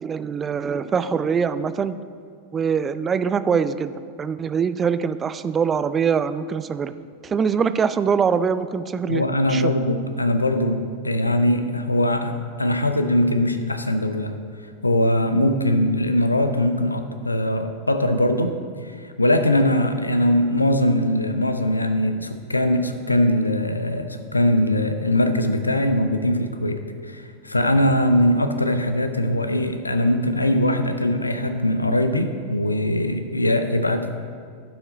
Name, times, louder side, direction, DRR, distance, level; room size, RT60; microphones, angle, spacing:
voice 1, 0.0-2.0 2.5-6.9 7.2-9.7, right 6 dB, 20° right, 14 dB, 0.3 m, -23 dB
voice 2, 9.1-14.4 14.8-18.6 18.8-34.2, left 1 dB, 85° left, 8 dB, 0.6 m, -21 dB
11.5 x 6.0 x 4.0 m, 2.1 s
figure-of-eight pair, 90°, 0 cm